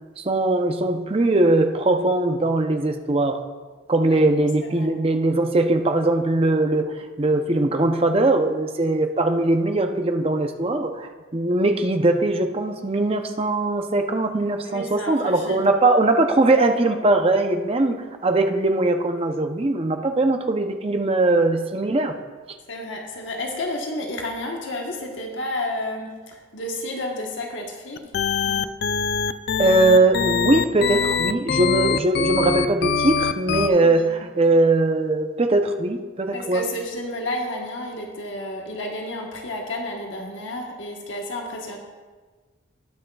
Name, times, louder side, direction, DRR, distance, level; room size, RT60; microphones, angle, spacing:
voice 1, 0.2-3.4 3.9-18.0 18.2-22.1 29.6-36.6, right 2 dB, 30° right, 6 dB, 0.6 m, -20 dB
voice 2, 14.6-15.7 22.7-28.1 28.4-28.6 33.8-34.2 36.3-41.8, left 1 dB, 70° left, 0 dB, 1.2 m, -31 dB
sound 1, 28.0-33.7, left 6 dB, 55° left, 0.4 m, -23 dB
19.0 x 6.4 x 2.3 m, 1.4 s
head